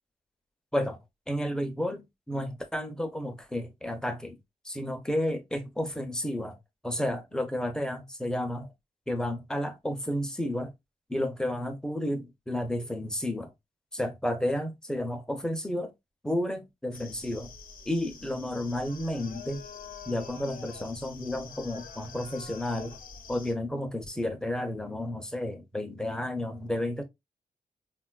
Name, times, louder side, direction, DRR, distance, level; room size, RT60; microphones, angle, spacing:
voice 1, 1.3-4.4 4.6-6.6 6.8-8.7 9.1-10.7 11.1-13.5 13.9-15.9 16.2-17.5 17.9-19.6 20.1-23.0 23.3-27.0, left 1 dB, 5° left, 0.4 m, -32 dB
sound 1, 16.9-23.5, left 6 dB, 70° left, 0.6 m, -46 dB
3.7 x 2.2 x 2.2 m
wide cardioid pair, 165°, 15 cm